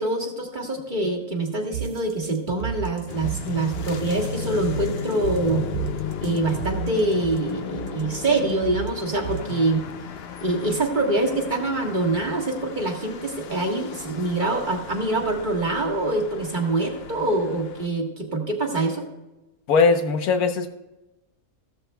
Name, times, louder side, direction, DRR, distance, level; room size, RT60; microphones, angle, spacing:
voice 1, 0.0-5.6 6.2-9.8 10.4-19.1, right 2 dB, 35° right, 1 dB, 1.6 m, -25 dB
sound 1, 1.7-9.7, right 11 dB, 80° right, 1.1 m, -33 dB
sound 2, 3.1-17.9, left 7 dB, 55° left, 0.8 m, -35 dB
voice 2, 19.7-20.8, left 4 dB, 80° left, 8 dB, 1.4 m, -20 dB
15.0 x 13.0 x 2.2 m, 1.0 s
omnidirectional pair, 1.5 m